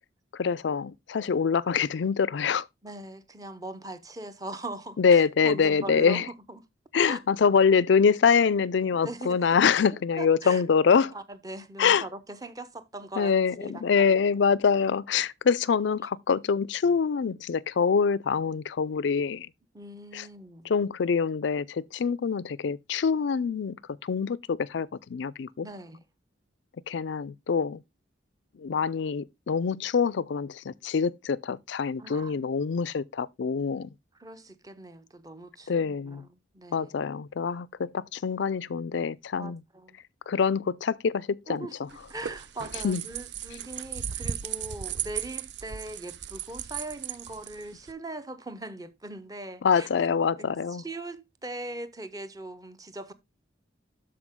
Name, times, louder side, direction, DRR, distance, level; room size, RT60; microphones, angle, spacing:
voice 1, 0.3-2.7 5.0-6.3 6.9-11.1 11.8-12.0 13.2-19.5 20.1-20.2 20.7-23.8 24.0-25.7 26.9-27.8 28.6-33.9 35.7-36.3 36.7-39.6 40.3-41.7 42.8-43.0 49.6-50.8, left 6 dB, 70° left, 0.4 m, -25 dB
voice 2, 2.8-5.0 5.4-6.6 7.0-7.2 9.0-9.6 10.2-10.6 11.1-14.2 19.7-20.7 25.6-26.0 32.0-32.5 34.2-36.9 39.4-40.0 41.5-41.8 42.1-49.9 50.4-53.1, right 2 dB, 20° right, 0.7 m, -40 dB
sound 1, 41.9-47.9, right 9 dB, 65° right, 0.5 m, -36 dB
12.5 x 4.8 x 3.6 m
head